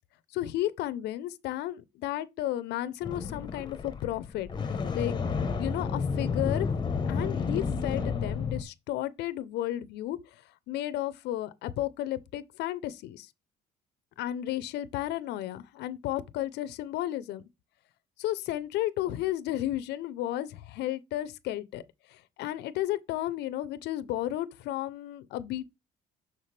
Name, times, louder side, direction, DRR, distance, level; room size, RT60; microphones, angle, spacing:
voice 1, 0.3-4.5 4.9-5.2 5.6-6.7 7.1-13.3 14.2-17.4 18.2-21.8 22.1-25.7, left 14 dB, 80° left, 0.6 m, -33 dB
sound 1, 3.0-8.6, left 5 dB, 25° left, 0.9 m, -31 dB
6.2 x 5.8 x 3.3 m
cardioid pair, 110°, 17 cm